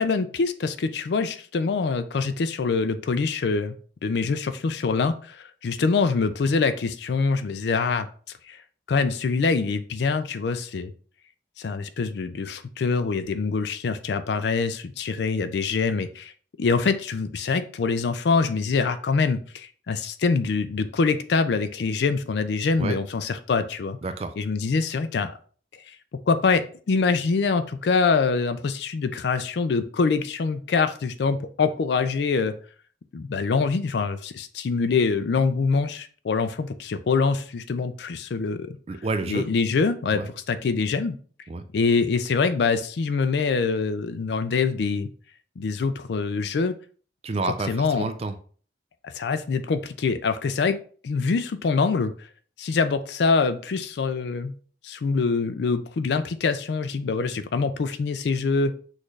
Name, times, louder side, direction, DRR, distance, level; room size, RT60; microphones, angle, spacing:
voice 1, 0.0-3.7 4.0-8.1 8.5-8.6 8.9-10.9 11.6-16.3 16.6-24.0 24.4-25.3 26.3-32.6 33.1-38.8 39.3-41.2 41.7-45.1 45.6-46.8 47.7-48.1 49.0-50.8 51.0-52.1 52.6-54.5 54.8-58.7, left 4 dB, 70° left, 11 dB, 0.4 m, -24 dB
voice 2, 24.0-24.3 38.9-39.5 40.1-40.3 41.5-41.6 47.2-48.4, right 3 dB, 35° right, 9 dB, 0.3 m, -29 dB
6.2 x 2.5 x 3.2 m, 0.43 s
head